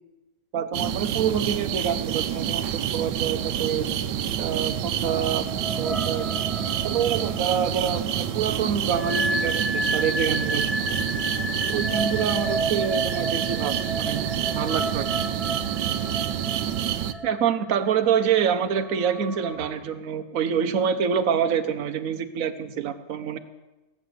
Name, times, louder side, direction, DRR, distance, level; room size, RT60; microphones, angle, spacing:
voice 1, 0.5-3.9 4.4-5.5 5.8-6.3 6.8-10.8 11.7-14.3 14.5-15.1 17.2-23.4, right 8 dB, 55° right, 7 dB, 1.3 m, -26 dB
sound 1, 0.7-17.1, right 10 dB, 85° right, 1.4 m, -28 dB
sound 2, 5.0-19.8, right 1 dB, ahead, 0.6 m, -32 dB
19.5 x 8.9 x 7.9 m, 1.1 s
omnidirectional pair, 1.8 m